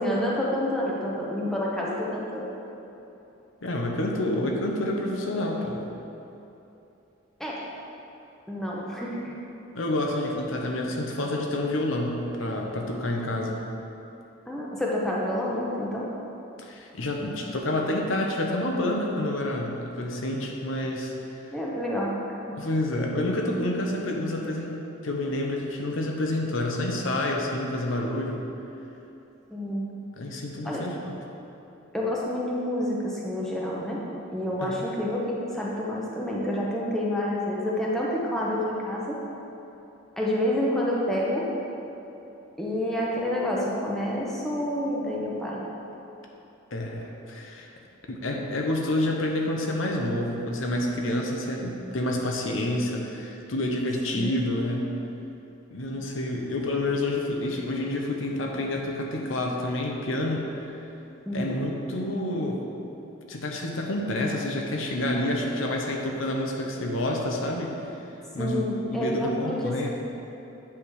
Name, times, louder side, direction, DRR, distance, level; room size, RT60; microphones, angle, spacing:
voice 1, 0.0-2.5 7.4-7.6 8.5-9.3 14.5-16.1 21.5-22.6 29.5-29.9 30.6-30.9 31.9-34.0 34.3-39.2 40.2-41.5 42.6-45.6 54.1-54.3 61.3-61.6 68.4-69.9, left 1 dB, ahead, -5 dB, 0.8 m, -28 dB
voice 2, 3.6-5.8 9.7-13.7 16.6-21.1 22.6-28.4 30.2-31.2 34.6-34.8 46.7-47.7 48.1-55.0 55.7-60.7 61.3-62.6 63.3-67.7 68.3-69.9, left 1 dB, 75° left, 0 dB, 0.9 m, -28 dB
8.6 x 3.5 x 6.3 m, 3.0 s
head